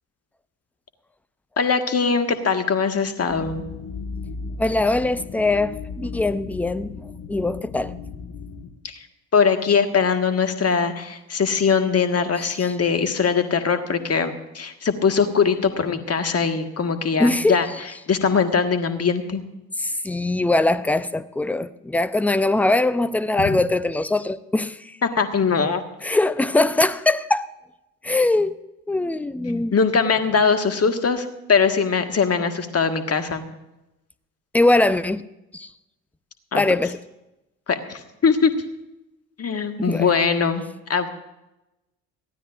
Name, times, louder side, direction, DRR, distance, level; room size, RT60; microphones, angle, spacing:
voice 1, 1.6-3.6 8.8-9.0 9.3-17.7 18.1-19.4 23.5-23.6 25.0-25.8 29.7-33.4 36.5-36.6 37.7-38.5 39.4-40.6 40.9-41.1, left 5 dB, 30° left, 1.6 m, -21 dB
sound 1, 3.3-8.7, left 4 dB, 45° left, 1.6 m, -35 dB
voice 2, 4.6-7.0 7.3-7.9 12.4-12.5 17.2-17.6 19.8-24.9 26.0-27.5 28.0-28.6 28.9-29.7 34.5-35.2 35.5-35.7 36.5-37.0 39.8-40.1, left 2 dB, 5° left, 0.5 m, -21 dB
22.5 x 15.5 x 2.5 m
figure-of-eight pair, 50°, 46 cm